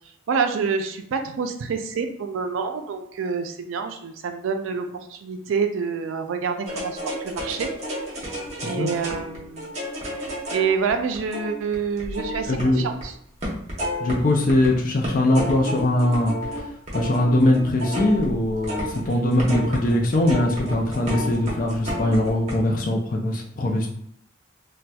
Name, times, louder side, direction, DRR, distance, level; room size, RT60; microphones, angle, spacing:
voice 1, 0.3-7.7 8.6-9.7 10.0-13.1, right 5 dB, 90° right, 6 dB, 0.3 m, -27 dB
sound 1, 6.7-13.1 13.4-14.7 15.0-22.5, equal, 35° right, 0.8 m, -31 dB
voice 2, 12.5-12.8 14.0-16.7 16.9-23.9, left 1 dB, 45° left, 0 dB, 0.4 m, -21 dB
4.0 x 2.2 x 2.3 m, 0.73 s
head